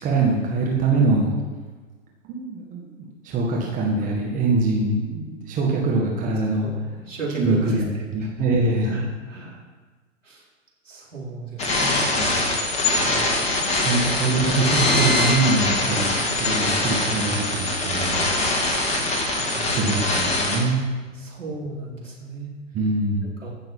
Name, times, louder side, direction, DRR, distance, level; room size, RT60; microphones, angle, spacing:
voice 1, 0.0-1.3 2.3-6.7 7.4-9.0 12.1-12.4 13.8-18.3 19.5-20.9 22.7-23.3, right 3 dB, 20° right, -2 dB, 1.9 m, -23 dB
voice 2, 6.6-8.3 8.8-9.6 10.2-10.5 10.8-12.3 13.0-13.7 15.9-16.1 19.3-19.7 21.1-22.5 23.4-23.5, right 3 dB, 75° right, -3 dB, 4.4 m, -35 dB
sound 1, 11.6-20.6, left 2 dB, 15° left, 2.1 m, -23 dB
15.5 x 6.8 x 5.7 m, 1.3 s
figure-of-eight pair, 110°, 38 cm